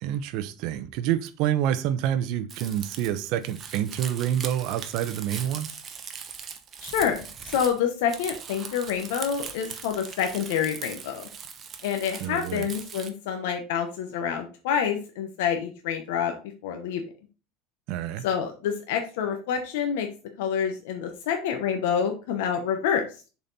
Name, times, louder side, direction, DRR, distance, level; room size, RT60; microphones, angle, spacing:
voice 1, 0.0-5.7 12.2-12.7 17.9-18.2, right 11 dB, 60° right, 0.7 m, -27 dB
Crumpling crinkling, 2.5-13.1, right 7 dB, 30° right, 0.9 m, -40 dB
voice 2, 6.8-7.2 7.4-11.3 11.8-16.3 16.6-17.0 18.2-20.1 20.4-23.0, left 8 dB, 80° left, 1.0 m, -27 dB
7.0 x 4.3 x 4.0 m
supercardioid pair, 150°, 0 cm